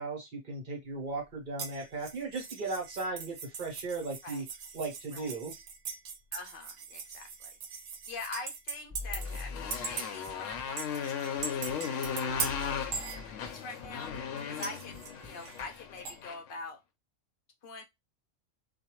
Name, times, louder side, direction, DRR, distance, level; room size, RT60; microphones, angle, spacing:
voice 1, 0.0-4.4 4.7-5.5, right 3 dB, 45° right, 2 dB, 1.0 m, -36 dB
sound 1, 1.6-9.5 9.7-10.3 10.8-13.8 14.6-16.2, right 5 dB, 75° right, 0.9 m, -41 dB
voice 2, 6.3-7.8 8.1-11.7 12.0-16.8 17.6-17.8, left 3 dB, 55° left, 4 dB, 0.7 m, -45 dB
sound 2, 8.9-15.7, left 3 dB, 20° right, 1.1 m, -45 dB
Motorcycle, 9.1-16.5, left 7 dB, 80° left, 0.9 m, -37 dB
2.5 x 2.3 x 2.9 m, 0.20 s
omnidirectional pair, 1.3 m